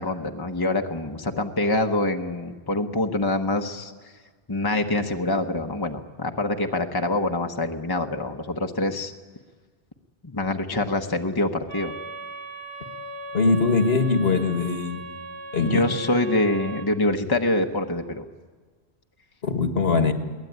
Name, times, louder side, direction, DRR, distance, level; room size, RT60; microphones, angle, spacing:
voice 1, 0.0-3.9 4.5-9.1 10.2-11.9 15.6-18.3, left 2 dB, 20° left, 5 dB, 1.1 m, -25 dB
sound 1, 11.7-16.9, right 2 dB, 25° right, 1.6 m, -38 dB
voice 2, 13.3-15.0 15.5-15.9 19.4-20.1, left 4 dB, 65° left, 8 dB, 1.9 m, -21 dB
22.0 x 18.5 x 9.4 m, 1.5 s
omnidirectional pair, 1.1 m